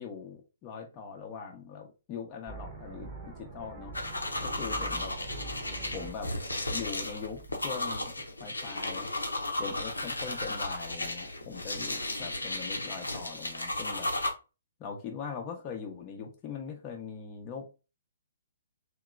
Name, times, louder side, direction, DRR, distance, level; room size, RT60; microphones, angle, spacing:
voice 1, 0.0-3.9 4.4-5.1 5.9-6.3 6.7-8.1 8.4-9.1 9.6-14.1 14.8-17.6, left 6 dB, 25° left, 1 dB, 0.6 m, -41 dB
sound 1, 2.5-8.4, right 4 dB, 25° right, 0.9 m, -45 dB
sound 2, 3.9-14.3, left 1 dB, 90° left, 0.6 m, -34 dB
2.9 x 2.9 x 2.4 m, 0.30 s
figure-of-eight pair, 130°, 0 cm